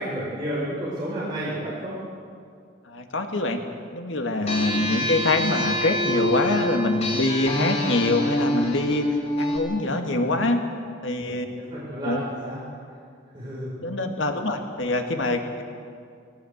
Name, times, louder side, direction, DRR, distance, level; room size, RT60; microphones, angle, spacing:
voice 1, 0.0-2.0 4.7-5.0 11.2-12.6 13.3-13.7, right 1 dB, 25° right, -8 dB, 4.7 m, -31 dB
voice 2, 2.9-3.6 3.9-10.6 11.0-11.5 12.0-12.2 13.8-15.6, left 2 dB, 75° left, 4 dB, 1.9 m, -24 dB
sound 1, 4.5-9.6, left 1 dB, 35° left, 3.4 m, -27 dB
21.5 x 18.0 x 8.0 m, 2.3 s
head